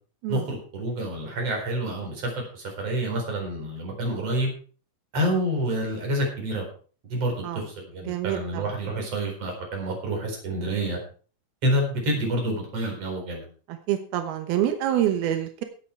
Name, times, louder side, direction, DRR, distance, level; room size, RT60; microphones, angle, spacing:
voice 1, 0.3-4.5 5.1-6.7 7.0-11.0 11.6-13.5, right 1 dB, 30° right, 1 dB, 4.9 m, -28 dB
voice 2, 8.1-8.7 13.7-15.6, right 11 dB, 85° right, 7 dB, 2.2 m, -26 dB
16.5 x 8.2 x 4.6 m, 0.40 s
omnidirectional pair, 5.9 m